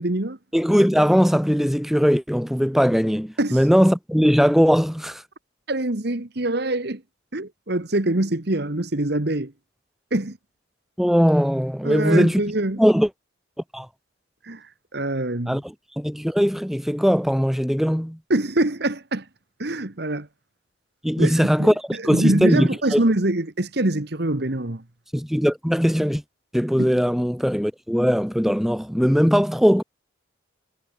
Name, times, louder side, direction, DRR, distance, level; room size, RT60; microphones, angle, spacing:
voice 1, 0.0-0.4 3.4-3.6 5.7-7.0 7.3-9.5 10.1-10.4 11.8-12.8 14.4-15.6 18.3-19.3 19.6-20.3 21.2-24.8 26.8-26.9, right 1 dB, 55° right, 1.6 m, -24 dB
voice 2, 0.5-5.2 11.0-12.4 12.8-13.1 13.7-13.9 15.5-18.2 21.0-23.0 25.1-26.2 26.5-29.8, equal, ahead, 3.4 m, -20 dB
head